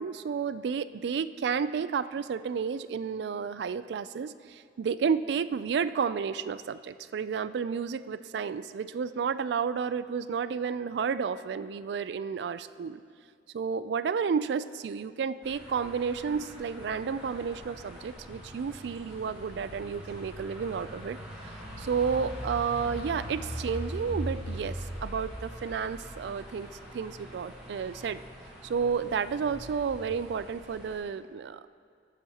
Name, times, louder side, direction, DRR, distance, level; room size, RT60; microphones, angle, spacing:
voice 1, 0.0-13.0 13.5-21.2 21.8-26.7 26.9-28.2 28.6-31.7, right 6 dB, 70° right, 14 dB, 0.3 m, -31 dB
sound 1, 15.4-31.0, equal, 5° right, 2.8 m, -42 dB
19.0 x 7.4 x 2.9 m, 2.2 s
head